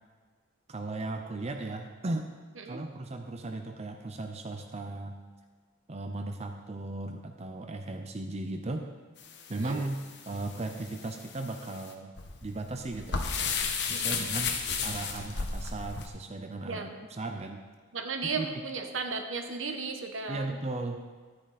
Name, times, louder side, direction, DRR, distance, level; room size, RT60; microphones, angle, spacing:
voice 1, 0.7-2.3 2.6-5.2 5.9-8.9 9.5-10.0 10.3-12.1 12.4-13.3 13.8-14.6 14.8-17.6 18.2-18.6 20.3-21.0, right 2 dB, 35° right, 5 dB, 0.6 m, -36 dB
sound 1, 9.2-16.1, left 5 dB, 60° left, 1.1 m, -34 dB
voice 2, 13.9-14.2 16.6-16.9 17.9-20.6, right 4 dB, 80° right, 5 dB, 1.1 m, -35 dB
12.5 x 9.4 x 4.2 m, 1.5 s
head